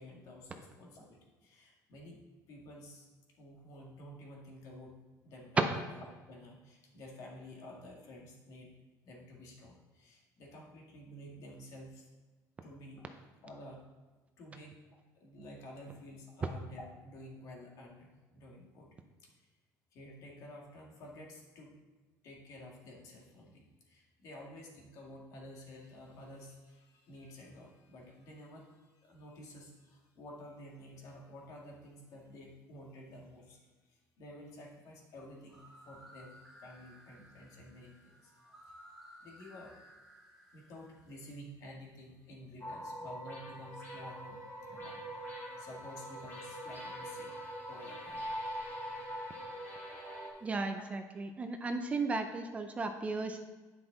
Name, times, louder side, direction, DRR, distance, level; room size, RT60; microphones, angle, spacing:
voice 1, 0.0-2.2 2.5-3.1 3.4-8.7 9.0-12.1 12.6-13.0 13.4-13.9 14.4-19.0 19.3-19.5 19.9-21.7 22.2-38.3 38.6-38.7 39.2-39.7 40.5-45.0 45.6-48.3 49.6-49.8 50.2-50.5 50.8-50.9, left 1 dB, 55° left, -1 dB, 2.0 m, -51 dB
sound 1, 35.4-41.2, equal, ahead, 1.5 m, -57 dB
sound 2, 42.6-50.3, equal, 30° left, 2.0 m, -43 dB
voice 2, 50.4-53.4, right 3 dB, 20° right, 7 dB, 0.5 m, -35 dB
9.9 x 5.7 x 3.9 m, 1.3 s
cardioid pair, 170°, 7 cm